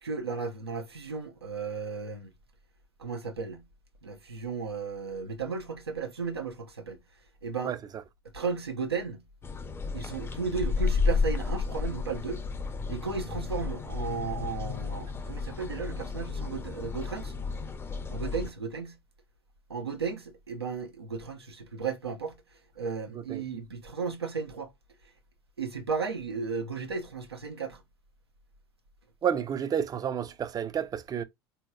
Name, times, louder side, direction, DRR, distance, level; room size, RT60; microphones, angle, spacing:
voice 1, 0.0-2.3 3.0-3.6 4.0-7.0 7.4-7.7 8.3-9.2 9.9-12.4 12.9-17.3 18.1-19.0 19.7-22.4 22.8-24.7 25.6-27.8, right 5 dB, 90° right, 0.7 m, -34 dB
sound 1, 9.4-18.5, left 4 dB, 20° left, 0.5 m, -32 dB
voice 2, 29.2-31.2, right 8 dB, 30° right, 0.5 m, -30 dB
4.4 x 2.8 x 2.2 m
figure-of-eight pair, 75°, 13 cm